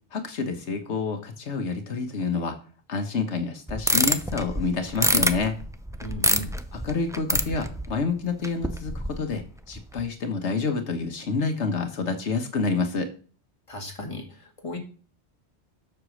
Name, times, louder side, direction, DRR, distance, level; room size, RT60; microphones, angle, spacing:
voice 1, 0.1-2.6 2.9-5.5 6.7-13.1, left 4 dB, 85° left, 6 dB, 1.5 m, -28 dB
sound 1, 3.7-8.1 8.4-9.4 9.7-10.0, right 1 dB, 5° right, 0.4 m, -26 dB
voice 2, 6.0-6.5 13.7-14.8, left 1 dB, 30° left, 1 dB, 2.1 m, -36 dB
8.1 x 6.7 x 6.3 m, 0.40 s
omnidirectional pair, 1.2 m